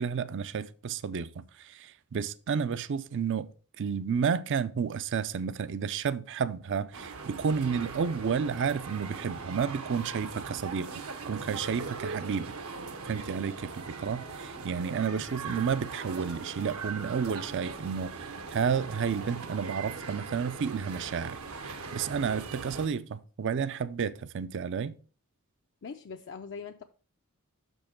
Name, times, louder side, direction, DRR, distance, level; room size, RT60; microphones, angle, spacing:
voice 1, 0.0-3.5 3.8-10.9 11.3-12.5 13.0-21.4 21.6-24.9, right 6 dB, 55° right, 0.4 m, -31 dB
sound 1, 6.9-22.9, right 4 dB, 75° right, 0.9 m, -40 dB
voice 2, 25.8-26.8, left 5 dB, 55° left, 0.5 m, -41 dB
6.4 x 5.4 x 4.3 m
head